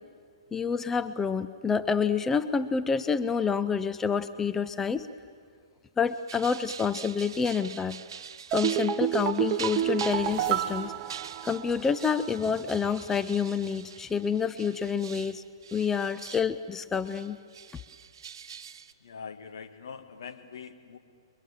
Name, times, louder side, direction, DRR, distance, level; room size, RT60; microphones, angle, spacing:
voice 1, 0.5-5.1 6.0-8.0 8.5-10.9 11.4-15.4 15.7-17.4, left 6 dB, 10° left, 12 dB, 0.6 m, -28 dB
sound 1, 6.1-16.5 16.9-18.9, right 7 dB, 65° right, 1.1 m, -43 dB
sound 2, 8.5-11.9 12.2-12.3, right 11 dB, 35° right, 1.0 m, -29 dB
voice 2, 19.0-21.0, left 6 dB, 70° left, 7 dB, 2.0 m, -43 dB
30.0 x 23.0 x 7.4 m, 2.1 s
hypercardioid pair, 120°, 3 cm